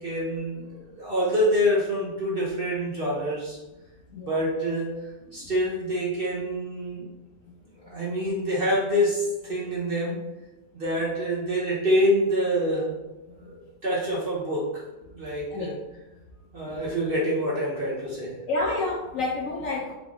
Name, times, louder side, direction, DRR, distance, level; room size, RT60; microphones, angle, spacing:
voice 1, 0.0-3.6 4.2-7.1 7.8-10.2 10.7-13.0 13.4-14.8 15.1-15.7 16.5-18.4, equal, 45° right, -5 dB, 0.8 m, -26 dB
voice 2, 18.5-19.9, left 2 dB, 70° left, -1 dB, 0.8 m, -29 dB
3.7 x 3.3 x 3.6 m, 1.0 s
omnidirectional pair, 1.8 m